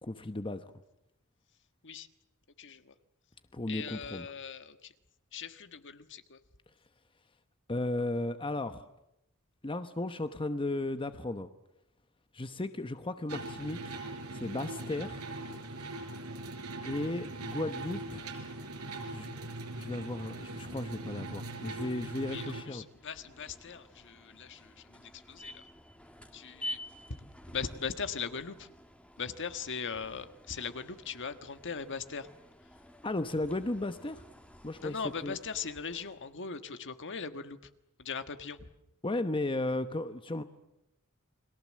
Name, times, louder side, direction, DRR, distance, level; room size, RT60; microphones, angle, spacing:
voice 1, 0.0-0.6 3.5-4.3 7.7-8.8 9.6-11.5 12.3-14.0 14.3-15.2 16.8-18.2 19.1-19.3 19.8-22.9 33.0-34.2 34.6-35.0 35.2-35.4 39.0-40.4, left 2 dB, 25° left, 10 dB, 1.0 m, -35 dB
voice 2, 2.6-2.9 3.7-4.9 5.3-6.4 22.3-25.6 26.3-26.8 27.5-28.7 29.2-32.3 34.8-37.6 38.0-38.7, left 6 dB, 55° left, 10 dB, 1.5 m, -40 dB
sound 1, 13.3-22.6, right 2 dB, 85° right, 4.9 m, -41 dB
sound 2, 22.8-36.3, equal, 5° left, 1.9 m, -49 dB
30.0 x 22.0 x 7.5 m, 0.85 s
head